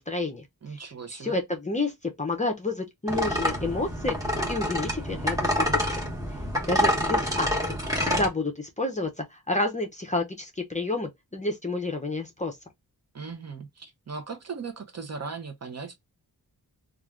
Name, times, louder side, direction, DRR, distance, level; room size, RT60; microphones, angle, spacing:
voice 1, 0.0-0.4 1.2-4.2 4.5-6.0 6.7-7.8 8.0-12.6, left 2 dB, 20° left, 0.5 m, -30 dB
voice 2, 0.6-1.4 13.1-15.9, right 5 dB, 45° right, 0.7 m, -38 dB
sound 1, 3.1-8.3, equal, 10° right, 1.0 m, -27 dB
3.2 x 2.4 x 2.3 m
wide cardioid pair, 120°, 38 cm